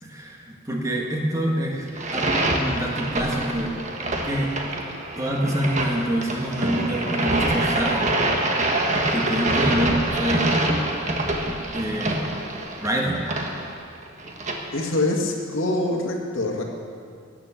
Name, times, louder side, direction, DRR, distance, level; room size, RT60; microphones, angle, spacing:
voice 1, 0.0-3.8 4.2-4.5 5.2-8.0 9.1-10.5 11.4-12.2 12.8-13.3, right 1 dB, 15° right, -1 dB, 1.4 m, -26 dB
sound 1, 1.9-14.5, right 1 dB, 35° right, 1.3 m, -25 dB
voice 2, 14.7-16.6, left 2 dB, 70° left, -1 dB, 2.0 m, -24 dB
17.5 x 6.9 x 7.2 m, 2.3 s
head